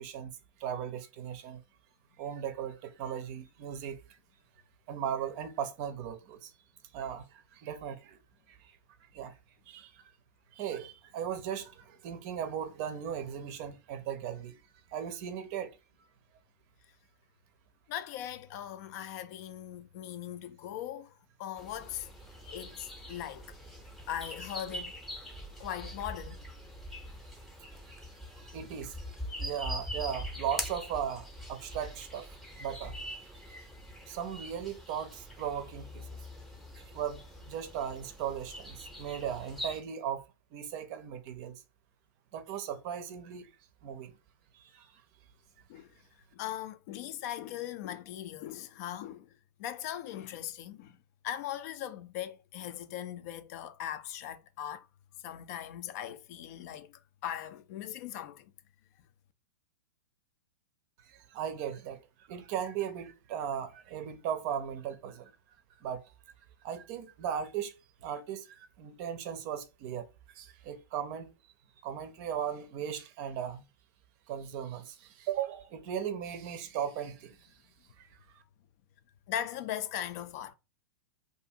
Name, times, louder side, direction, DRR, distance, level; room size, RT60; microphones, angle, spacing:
voice 1, 0.0-1.6 2.2-4.0 4.9-6.5 6.9-8.2 8.5-8.8 9.1-9.4 9.7-10.0 10.5-14.6 14.9-15.8 28.3-29.0 29.4-33.2 34.1-36.1 36.8-40.2 40.5-41.6 42.3-43.5 43.8-44.1 44.5-44.9 61.1-62.0 62.3-65.3 65.8-66.0 66.6-67.8 68.0-70.1 70.3-71.3 71.8-73.6 74.3-77.5 78.0-78.1, right 9 dB, 45° right, 0.5 m, -37 dB
voice 2, 17.9-21.1 21.4-22.1 22.5-23.4 24.1-24.9 25.6-26.4 45.7-45.9 46.3-49.3 49.6-50.9 51.2-54.9 55.2-56.9 57.2-58.4 79.3-80.5, left 11 dB, 50° left, 0.4 m, -39 dB
sound 1, 21.6-39.8, equal, ahead, 0.7 m, -43 dB
2.5 x 2.4 x 2.7 m
hypercardioid pair, 115°, 11 cm